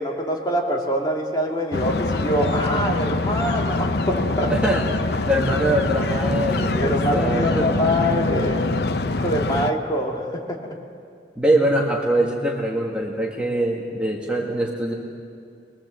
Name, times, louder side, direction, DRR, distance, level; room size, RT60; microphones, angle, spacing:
voice 1, 0.0-4.5 6.8-8.7 9.0-10.6, equal, 25° left, 0 dB, 2.4 m, -24 dB
sound 1, 1.7-9.7, left 2 dB, 65° left, 0.8 m, -24 dB
voice 2, 4.5-4.9 5.3-7.7 11.3-14.9, right 1 dB, 5° right, -1 dB, 1.7 m, -23 dB
22.5 x 21.5 x 7.8 m, 2.3 s
head